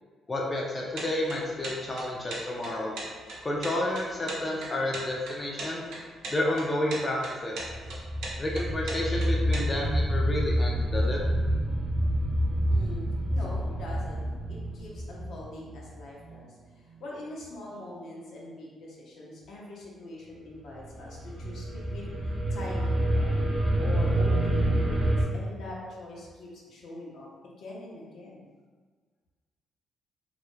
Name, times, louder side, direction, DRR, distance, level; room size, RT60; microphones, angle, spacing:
voice 1, 0.3-2.9 3.4-5.8 6.3-7.5 8.4-11.2, left 1 dB, 25° left, -3 dB, 0.4 m, -30 dB
sound 1, 0.9-9.6, right 2 dB, 85° right, 0.6 m, -38 dB
sound 2, 7.6-16.3 20.8-25.2, right 1 dB, 35° right, 0.4 m, -27 dB
voice 2, 12.7-27.3 27.6-28.4, left 1 dB, 70° left, -4 dB, 0.7 m, -43 dB
2.3 x 2.0 x 3.0 m, 1.5 s
cardioid pair, 90°, 0 cm